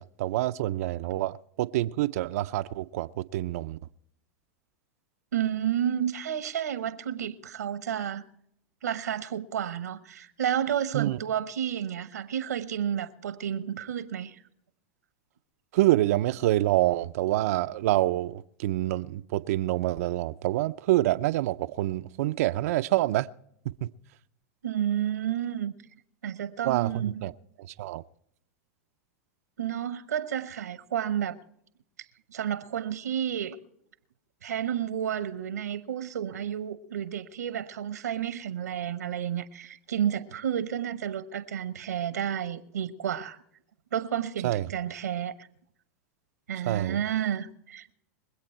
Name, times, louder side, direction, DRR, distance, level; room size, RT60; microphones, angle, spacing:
voice 1, 0.0-3.8 10.9-11.2 15.7-23.3 23.6-23.9 26.6-27.3 27.7-28.0 44.4-44.7 46.6-47.0, right 15 dB, 65° right, 0.5 m, -27 dB
voice 2, 5.3-8.2 8.8-14.4 24.6-25.7 26.2-27.1 29.6-31.4 32.3-33.6 34.4-43.4 43.9-45.3 46.5-47.9, right 9 dB, 90° right, 1.0 m, -31 dB
24.0 x 8.3 x 4.5 m
hypercardioid pair, 110°, 9 cm